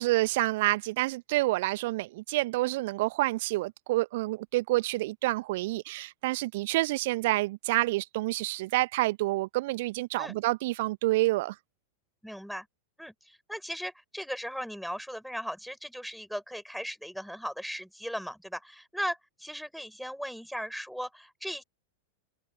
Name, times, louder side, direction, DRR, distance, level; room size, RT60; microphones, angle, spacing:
voice 1, 0.0-11.6, right 19 dB, 50° right, 0.9 m, -28 dB
voice 2, 12.2-12.7 13.0-21.6, equal, ahead, 6.8 m, -37 dB
open air
figure-of-eight pair, 90°, 0 cm